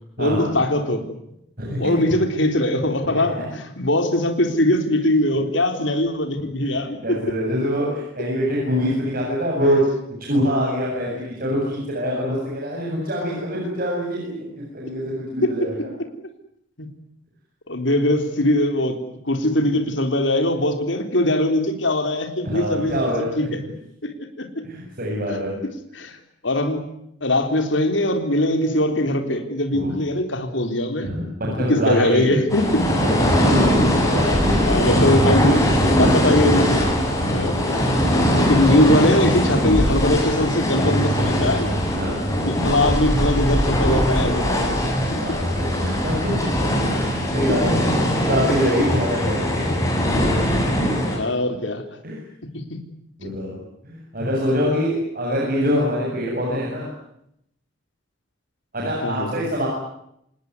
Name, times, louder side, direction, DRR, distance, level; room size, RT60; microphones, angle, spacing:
voice 1, 0.2-1.0 1.8-7.2 15.4-15.7 16.8-16.9 17.7-19.0 19.3-23.6 24.0-24.5 25.3-25.4 25.9-26.2 26.4-26.8 27.2-31.2 31.6-32.9 34.5-36.9 37.3-37.9 38.3-41.7 42.5-44.6 45.1-45.4 51.1-51.8 52.5-52.8 53.2-53.3 59.0-59.3, left 1 dB, 75° left, 7 dB, 3.7 m, -21 dB
voice 2, 1.6-2.0 3.0-3.4 6.6-6.8 7.0-9.8 10.2-15.9 22.4-23.5 24.6-25.6 29.7-29.9 31.0-32.3 33.2-35.0 42.0-42.3 45.1-46.7 47.0-47.9 48.3-49.8 52.0-52.2 53.2-56.9 58.7-59.7, equal, 50° right, -2 dB, 7.8 m, -25 dB
sound 1, 32.5-51.2, equal, 15° left, 8.0 m, -20 dB
27.5 x 19.5 x 9.7 m, 0.77 s
head